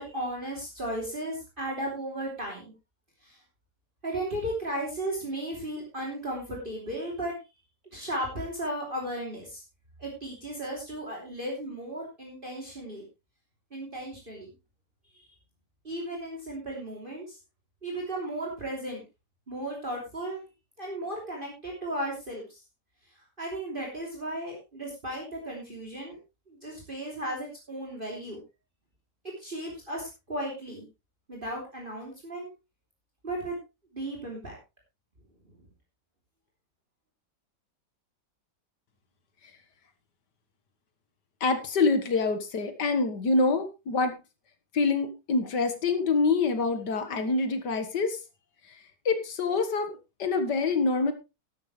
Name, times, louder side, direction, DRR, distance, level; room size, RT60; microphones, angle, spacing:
voice 1, 0.0-2.7 3.2-3.4 4.0-7.4 7.9-9.6 10.0-13.0 13.7-14.5 15.9-17.4 17.8-19.0 19.5-20.4 20.8-22.6 23.4-26.2 26.5-28.4 29.4-30.9 31.3-32.5 33.2-33.6 33.9-34.6, right 1 dB, 30° right, -1 dB, 3.3 m, -35 dB
voice 2, 41.4-44.2 44.7-48.2 49.1-51.1, left 4 dB, 80° left, 9 dB, 2.2 m, -26 dB
12.5 x 12.0 x 3.2 m, 0.27 s
omnidirectional pair, 1.8 m